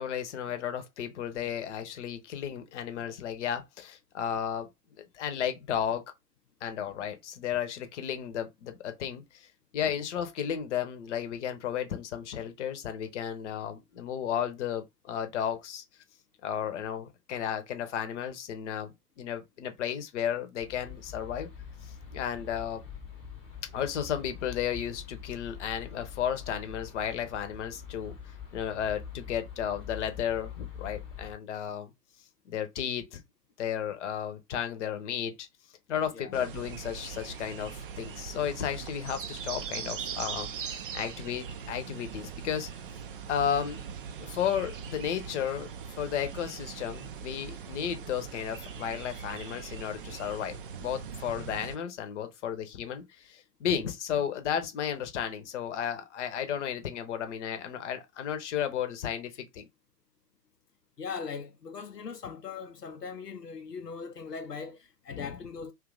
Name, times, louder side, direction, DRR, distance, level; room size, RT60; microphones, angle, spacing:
voice 1, 0.0-4.7 5.0-6.0 6.6-9.5 9.7-15.8 16.4-21.5 21.8-22.8 23.7-28.1 28.5-31.9 32.5-33.2 33.6-35.5 35.9-42.7 43.3-43.9 44.2-45.7 46.0-59.7 65.1-65.4, left 9 dB, 50° left, 0.8 m, -33 dB
sound 1, 20.6-31.4, left 7 dB, 10° left, 0.8 m, -44 dB
sound 2, 36.3-51.8, right 7 dB, 40° right, 0.4 m, -41 dB
voice 2, 61.0-65.7, left 5 dB, 90° left, 0.7 m, -40 dB
2.8 x 2.4 x 3.8 m
figure-of-eight pair, 105°, 47 cm